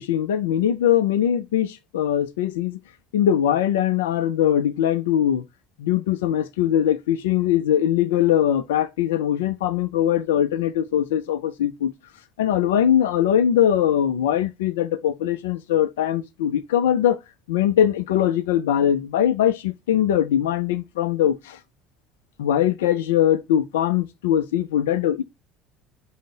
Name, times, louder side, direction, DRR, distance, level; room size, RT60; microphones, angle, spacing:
voice 1, 0.0-2.8 3.1-5.4 5.8-11.9 12.4-17.2 17.5-21.6 22.4-25.2, left 10 dB, 70° left, 0.4 m, -21 dB
5.2 x 2.1 x 3.6 m
figure-of-eight pair, 60°, 0 cm